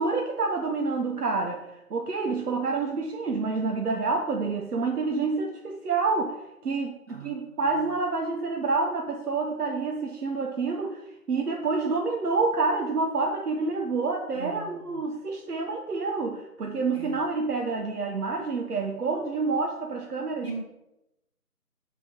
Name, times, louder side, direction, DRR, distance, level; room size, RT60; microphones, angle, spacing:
voice 1, 0.0-6.4 6.6-11.0 11.3-20.5, right 4 dB, 80° right, 2 dB, 0.9 m, -28 dB
voice 2, 7.1-7.5 14.3-14.7 16.9-17.2 20.4-20.6, right 4 dB, 40° right, -2 dB, 1.6 m, -39 dB
5.7 x 3.7 x 5.1 m, 0.91 s
figure-of-eight pair, 175°, 45 cm